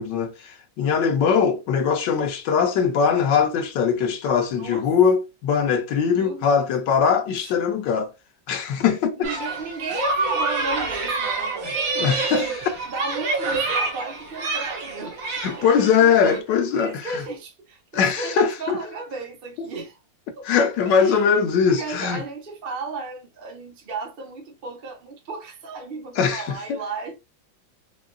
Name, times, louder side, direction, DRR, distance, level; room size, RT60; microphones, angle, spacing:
voice 1, 0.0-8.1 8.5-9.3 12.0-12.5 15.4-17.1 17.9-18.8 20.4-22.2 26.2-26.8, left 6 dB, 75° left, 1.2 m, -21 dB
voice 2, 4.5-4.9 6.1-7.1 7.4-7.5 9.1-12.6 12.8-15.2 15.6-15.7 16.0-16.4 16.7-20.0 20.3-20.5 20.8-21.4 21.7-27.2, right 3 dB, 40° right, 0.9 m, -34 dB
sound 1, 9.2-16.4, right 3 dB, 75° right, 1.6 m, -27 dB
4.6 x 2.3 x 2.2 m
omnidirectional pair, 2.1 m